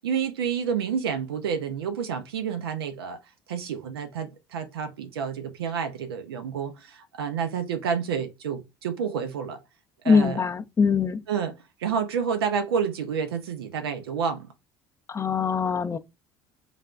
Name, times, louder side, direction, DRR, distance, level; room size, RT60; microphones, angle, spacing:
voice 1, 0.0-3.2 3.5-9.6 10.0-10.4 11.3-11.5 11.8-14.5, right 7 dB, 85° right, 0.4 m, -29 dB
voice 2, 10.1-11.2 15.1-16.0, left 5 dB, 25° left, 0.4 m, -22 dB
3.2 x 2.3 x 2.4 m
hypercardioid pair, 65°, 12 cm